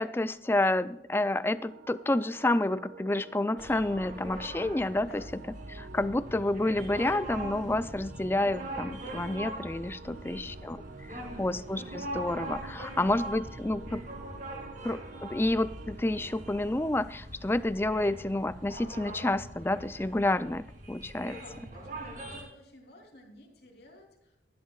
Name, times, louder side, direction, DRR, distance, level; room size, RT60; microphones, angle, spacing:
voice 1, 0.0-5.2 5.7-10.0 10.3-10.8 11.4-14.0 14.8-21.3, left 1 dB, 10° left, 14 dB, 0.4 m, -29 dB
sound 1, 1.5-17.0, right 4 dB, 70° right, 0.5 m, -50 dB
sound 2, 3.6-22.4, right 1 dB, 45° right, 2.5 m, -42 dB
voice 2, 10.0-10.5 11.1-11.5 12.7-13.2 13.7-14.0 21.3-24.4, left 1 dB, 65° left, 1 dB, 3.3 m, -53 dB
17.5 x 12.0 x 2.4 m, 0.83 s
head